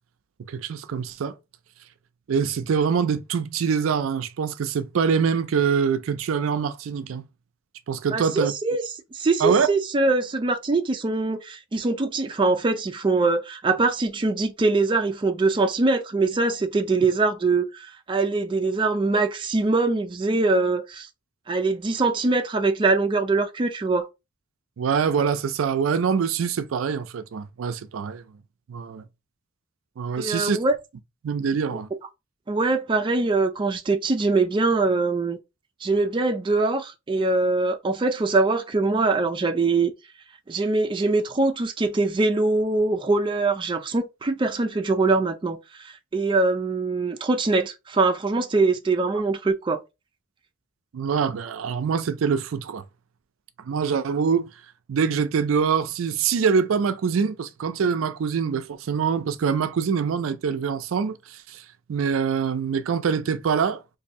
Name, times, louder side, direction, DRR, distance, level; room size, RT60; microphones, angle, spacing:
voice 1, 0.5-1.3 2.3-7.2 7.9-8.5 9.4-9.7 24.8-28.2 28.7-29.0 30.0-30.6 31.2-31.9 50.9-52.8 53.6-54.5 54.9-61.6 61.9-63.8, right 6 dB, 85° right, 0.4 m, -24 dB
voice 2, 8.1-8.8 9.1-21.1 21.5-24.1 30.2-30.8 31.7-31.8 32.5-35.4 35.8-39.9 40.5-49.8, right 3 dB, 25° right, 0.4 m, -23 dB
2.6 x 2.6 x 4.1 m
head